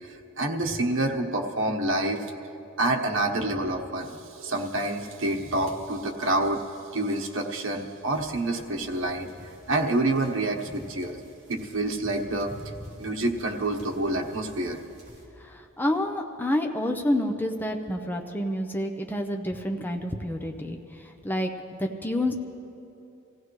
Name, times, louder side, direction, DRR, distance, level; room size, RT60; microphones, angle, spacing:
voice 1, 0.0-2.2 2.8-6.6 6.9-9.3 9.7-11.2 11.5-12.5 13.0-14.8, right 2 dB, 75° right, 1 dB, 1.2 m, -27 dB
sound 1, 8.1-15.2, equal, 30° right, 3.4 m, -50 dB
voice 2, 15.4-21.5 21.8-22.3, left 1 dB, 10° left, 3 dB, 0.7 m, -28 dB
26.0 x 16.0 x 3.2 m, 2.8 s
head